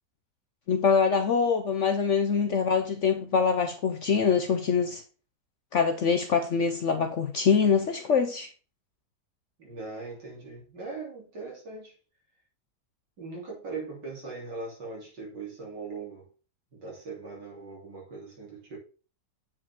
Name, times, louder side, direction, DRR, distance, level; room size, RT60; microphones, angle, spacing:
voice 1, 0.7-5.0 5.7-8.5, left 6 dB, 60° left, 0.8 m, -24 dB
voice 2, 9.6-11.9 13.2-16.3 16.7-18.8, right 4 dB, 80° right, 3.8 m, -40 dB
8.3 x 5.0 x 3.5 m
omnidirectional pair, 1.9 m